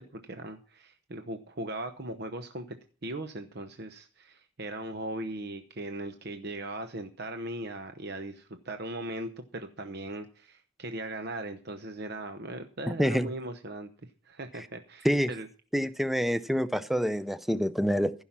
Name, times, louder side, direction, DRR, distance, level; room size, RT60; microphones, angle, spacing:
voice 1, 0.0-2.8 3.0-13.9 14.2-15.5, right 2 dB, 55° right, 7 dB, 0.9 m, -39 dB
voice 2, 15.7-18.1, equal, ahead, 13 dB, 0.5 m, -26 dB
15.5 x 5.7 x 7.4 m, 0.38 s
head